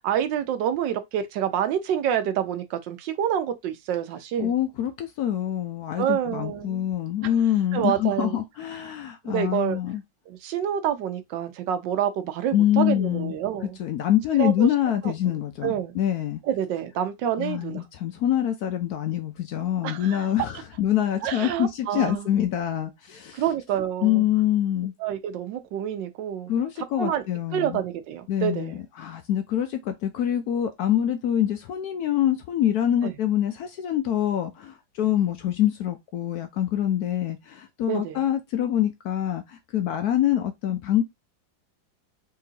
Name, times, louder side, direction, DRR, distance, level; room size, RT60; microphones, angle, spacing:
voice 1, 0.0-4.5 6.0-6.9 7.7-8.4 9.2-9.8 10.3-13.8 14.4-14.7 15.0-15.1 15.6-15.9 16.4-17.8 19.8-20.2 21.2-22.3 23.3-24.2 25.0-26.5 27.0-27.2 27.5-28.8 33.0-33.1 37.9-38.2, right 10 dB, 80° right, 1.3 m, -27 dB
voice 2, 4.4-10.0 12.5-13.3 13.8-16.4 17.4-23.4 24.0-24.9 26.5-27.8 28.3-41.0, left 11 dB, 70° left, 0.9 m, -25 dB
3.8 x 3.4 x 2.7 m
omnidirectional pair, 2.0 m